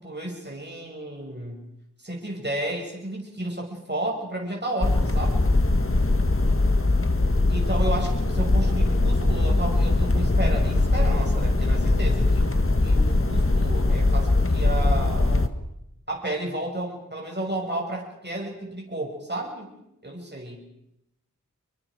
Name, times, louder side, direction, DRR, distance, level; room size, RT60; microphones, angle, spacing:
voice 1, 0.0-1.6 2.0-5.4 7.5-15.5 16.1-19.7 20.0-20.6, right 1 dB, 35° right, -1 dB, 6.4 m, -32 dB
sound 1, 4.8-15.5, left 2 dB, 45° left, 1.7 m, -21 dB
27.0 x 23.5 x 5.1 m, 0.82 s
wide cardioid pair, 40°, 32 cm